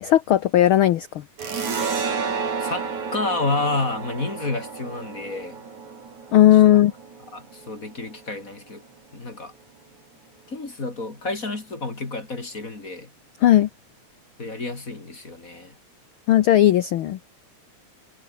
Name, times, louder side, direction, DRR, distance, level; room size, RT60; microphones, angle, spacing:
voice 1, 0.0-1.1 6.3-6.9 13.4-13.7 16.3-17.2, left 12 dB, 75° left, 1.2 m, -16 dB
sound 1, 1.4-8.6, right 5 dB, 75° right, 5.5 m, -31 dB
voice 2, 2.3-5.6 6.5-6.8 7.3-8.8 9.1-9.5 10.5-13.1 14.4-15.8, left 3 dB, 30° left, 3.3 m, -30 dB
omnidirectional pair, 3.4 m